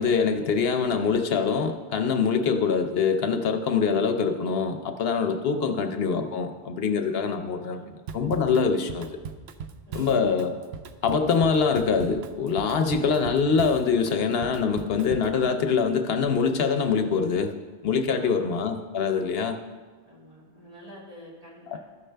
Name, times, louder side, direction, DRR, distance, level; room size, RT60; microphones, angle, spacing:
voice 1, 0.0-7.8 8.1-9.2 9.9-10.5 11.0-17.5 17.8-19.6 21.7-21.8, left 5 dB, 75° left, 7 dB, 0.9 m, -24 dB
voice 2, 6.8-7.2 7.7-7.9 9.9-10.2 18.1-18.6 20.0-21.8, equal, 35° right, -6 dB, 2.5 m, -47 dB
Drum kit / Drum, 8.1-15.4, right 6 dB, 85° right, 0.8 m, -39 dB
13.5 x 6.4 x 3.3 m, 1.4 s
omnidirectional pair, 1.0 m